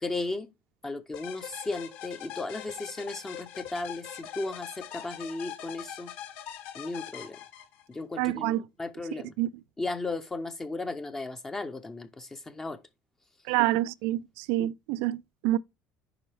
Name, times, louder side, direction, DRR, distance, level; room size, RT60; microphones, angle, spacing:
voice 1, 0.0-0.5 0.8-6.1 6.7-7.4 7.9-9.3 9.8-12.8 14.6-14.7, left 2 dB, 10° left, 0.6 m, -35 dB
sound 1, 1.1-8.0, left 10 dB, 65° left, 1.7 m, -42 dB
voice 2, 8.2-8.6 9.4-9.5 13.5-15.6, right 16 dB, 85° right, 0.3 m, -27 dB
8.6 x 5.4 x 3.3 m
cardioid pair, 180°, 4 cm